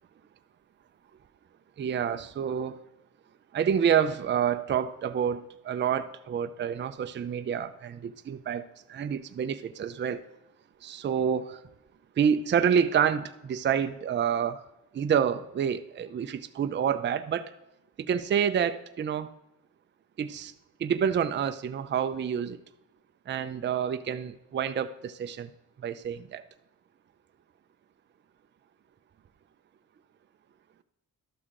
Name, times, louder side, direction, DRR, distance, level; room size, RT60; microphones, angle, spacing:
voice 1, 1.8-2.8 3.5-10.2 10.8-11.6 12.2-14.6 14.9-17.5 18.1-19.3 20.2-20.5 20.8-22.6 23.3-25.5 25.8-26.4, right 8 dB, 35° right, 10 dB, 0.4 m, -28 dB
12.0 x 6.3 x 3.7 m, 0.89 s
cardioid pair, 120°, 33 cm